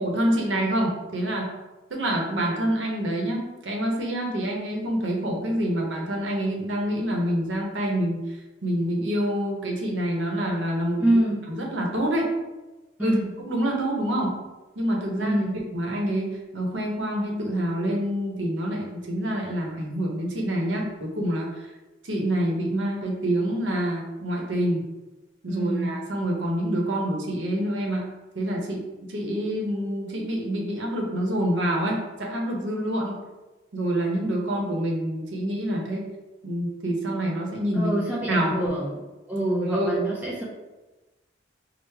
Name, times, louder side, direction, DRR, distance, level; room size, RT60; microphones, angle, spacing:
voice 1, 0.0-1.5 1.9-8.2 8.6-11.0 11.5-12.3 13.0-13.2 13.5-14.4 14.8-21.7 22.0-24.8 25.4-28.1 28.3-28.8 29.1-33.2 33.7-36.1 36.4-37.9 38.3-38.6 39.6-40.0, right 1 dB, 80° right, 0 dB, 0.8 m, -26 dB
voice 2, 11.0-11.4 13.0-13.3 15.2-15.6 25.5-26.0 37.7-39.0 39.3-40.4, right 1 dB, 10° right, -6 dB, 0.5 m, -26 dB
4.6 x 2.0 x 3.3 m, 1.1 s
head